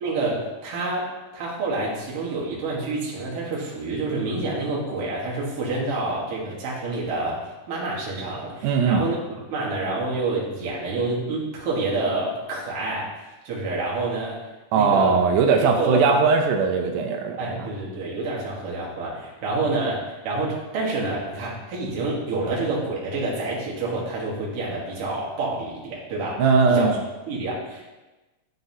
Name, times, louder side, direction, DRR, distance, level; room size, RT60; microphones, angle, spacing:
voice 1, 0.0-9.2 9.5-13.1 13.4-14.4 14.7-15.2 15.6-16.2 17.4-26.4 26.7-26.9 27.3-27.9, right 2 dB, 55° right, -4 dB, 2.1 m, -28 dB
voice 2, 8.6-9.0 14.7-17.6 26.4-27.0, right 5 dB, 90° right, 3 dB, 2.1 m, -20 dB
10.5 x 3.9 x 2.7 m, 1.1 s
omnidirectional pair, 3.5 m